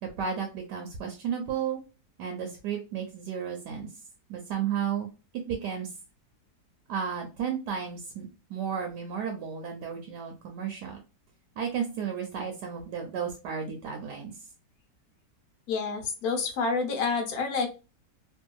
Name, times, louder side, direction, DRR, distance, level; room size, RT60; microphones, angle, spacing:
voice 1, 0.0-1.8 2.2-3.9 4.3-5.1 5.3-5.9 6.9-11.0 11.6-14.3, right 7 dB, 80° right, 2 dB, 1.2 m, -33 dB
voice 2, 15.7-17.7, left 4 dB, 65° left, 5 dB, 1.2 m, -28 dB
3.0 x 2.6 x 2.2 m, 0.30 s
omnidirectional pair, 1.8 m